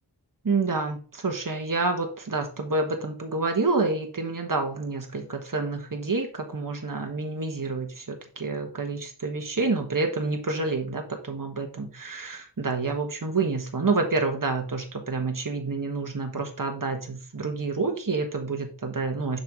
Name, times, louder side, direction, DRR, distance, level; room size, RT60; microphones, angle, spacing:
voice 1, 0.4-19.4, right 3 dB, 50° right, 4 dB, 1.3 m, -28 dB
6.7 x 5.6 x 3.4 m, 0.37 s
wide cardioid pair, 50°, 42 cm